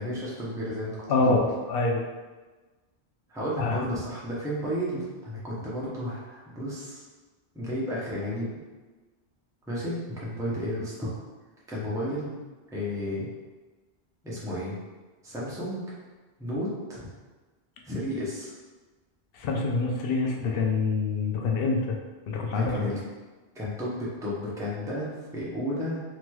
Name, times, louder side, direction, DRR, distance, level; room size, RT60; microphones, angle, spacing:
voice 1, 0.0-1.0 1.2-1.4 3.3-7.0 7.5-8.5 9.7-11.1 11.7-12.3 12.7-13.3 14.2-14.8 15.2-15.8 16.4-17.0 17.8-18.5 22.5-23.0 23.5-26.0, equal, 5° right, -7 dB, 0.5 m, -32 dB
voice 2, 1.1-2.0 3.6-3.8 19.3-22.0 22.3-22.9, left 3 dB, 65° left, 0 dB, 0.7 m, -26 dB
3.1 x 2.9 x 2.2 m, 1.3 s
omnidirectional pair, 1.1 m